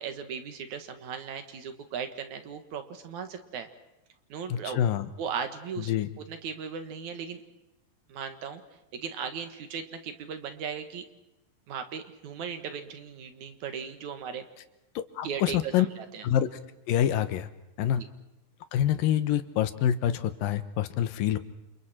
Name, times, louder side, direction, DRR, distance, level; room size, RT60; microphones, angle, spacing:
voice 1, 0.0-3.7 4.3-4.8 5.2-5.9 6.2-7.4 8.1-8.6 8.9-11.0 11.7-14.5 15.2-16.3 17.9-18.1, right 7 dB, 55° right, 8 dB, 2.6 m, -37 dB
voice 2, 4.5-5.1 5.9-6.1 15.0-15.9 16.2-16.5 16.9-17.5 17.8-18.0 18.7-21.4, left 10 dB, 70° left, 11 dB, 2.6 m, -26 dB
29.5 x 28.0 x 4.4 m, 0.94 s
omnidirectional pair, 4.6 m